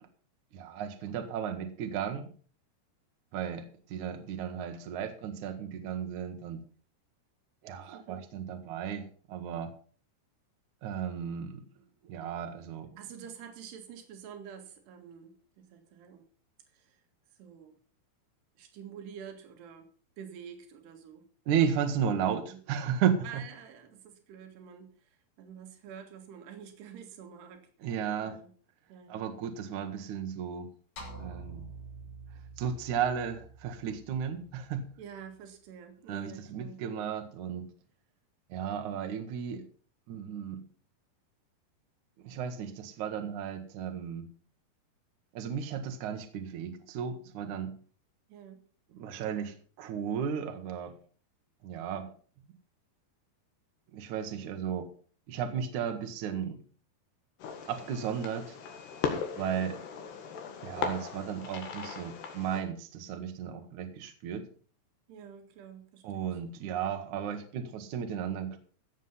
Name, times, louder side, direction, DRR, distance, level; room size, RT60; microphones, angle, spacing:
voice 1, 0.5-2.3 3.3-6.6 7.6-9.7 10.8-11.7 12.0-12.9 21.5-23.4 27.8-28.4 29.1-30.7 31.2-31.7 32.6-34.9 36.1-37.7 38.5-39.7 40.1-40.6 42.2-44.3 45.3-47.8 48.9-50.9 51.6-52.1 53.9-54.9 55.3-56.6 57.7-58.6 59.3-59.8 60.6-64.5 66.0-68.6, right 8 dB, 60° right, 2.2 m, -34 dB
voice 2, 7.9-8.2 13.0-16.2 16.7-17.0 17.4-17.8 18.6-19.9 20.2-21.2 21.7-21.9 22.4-22.6 23.2-27.9 28.2-28.5 28.9-29.3 35.0-36.8 48.3-48.6 65.1-66.4, right 8 dB, 80° right, 3.9 m, -48 dB
sound 1, 31.0-35.4, right 3 dB, 55° left, 4.7 m, -47 dB
Fireworks, 57.4-62.6, left 6 dB, 80° left, 3.9 m, -38 dB
16.0 x 7.4 x 5.6 m
omnidirectional pair, 4.7 m